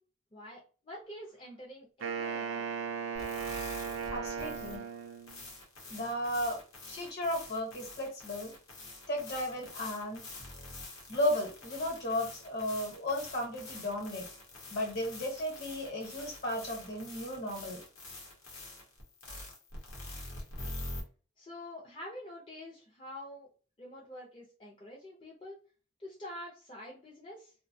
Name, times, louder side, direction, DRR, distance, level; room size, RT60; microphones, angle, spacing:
voice 1, 0.3-2.7 21.4-23.5 23.8-25.6 26.0-27.5, left 1 dB, 25° left, -4 dB, 0.5 m, -47 dB
Wind instrument woodwind instrument, 2.0-5.5, right 6 dB, 70° right, 0.5 m, -37 dB
sound 1, 3.1-21.0, left 2 dB, 90° left, 0.9 m, -46 dB
voice 2, 4.1-4.8 5.9-6.6 6.9-8.5 9.1-10.2 11.1-14.3 14.7-17.8, left 1 dB, 50° left, 1 dB, 1.0 m, -34 dB
2.5 x 2.2 x 2.6 m, 0.36 s
head